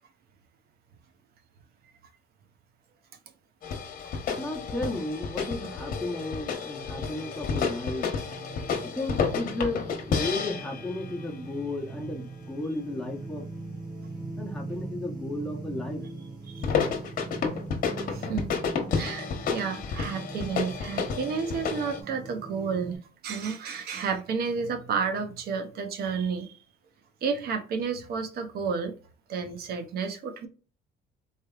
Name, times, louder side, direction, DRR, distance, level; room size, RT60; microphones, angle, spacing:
sound 1, 3.6-11.3 16.6-22.0, left 5 dB, 55° left, 0.9 m, -31 dB
voice 1, 4.4-8.1 8.9-13.4 14.4-16.0, left 2 dB, 5° left, 1.0 m, -34 dB
sound 2, 4.9-23.0, right 3 dB, 25° right, 1.8 m, -42 dB
voice 2, 18.1-18.5 18.9-26.5 27.2-28.9 29.3-30.5, right 5 dB, 65° right, 0.7 m, -31 dB
4.2 x 3.2 x 2.4 m
cardioid pair, 110°, 17 cm